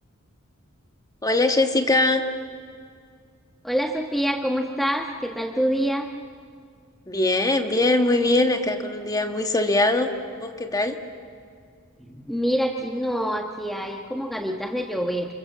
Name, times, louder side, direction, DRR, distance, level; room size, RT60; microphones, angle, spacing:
voice 1, 1.2-2.2 7.1-11.0, left 2 dB, 15° left, 6 dB, 1.5 m, -22 dB
voice 2, 3.6-6.1 12.1-15.3, equal, ahead, 2 dB, 1.2 m, -26 dB
28.5 x 28.0 x 7.4 m, 2.2 s
head